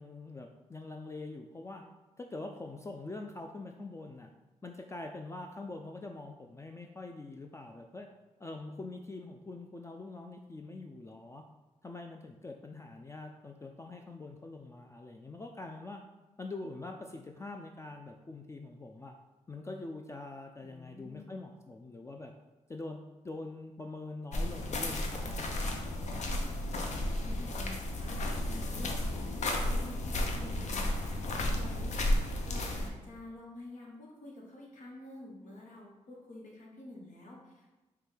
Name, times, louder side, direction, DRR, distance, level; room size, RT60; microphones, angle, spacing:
voice 1, 0.0-1.8 2.2-4.3 4.6-8.1 8.4-11.4 11.8-16.0 16.4-19.1 19.5-22.3 22.7-26.2, left 2 dB, 20° left, 3 dB, 0.3 m, -44 dB
voice 2, 20.5-21.4 26.8-37.7, left 2 dB, 80° left, -2 dB, 1.0 m, -49 dB
sound 1, 24.3-32.9, left 1 dB, 65° left, 0.6 m, -33 dB
5.0 x 2.2 x 3.3 m, 1.1 s
cardioid pair, 60°, 13 cm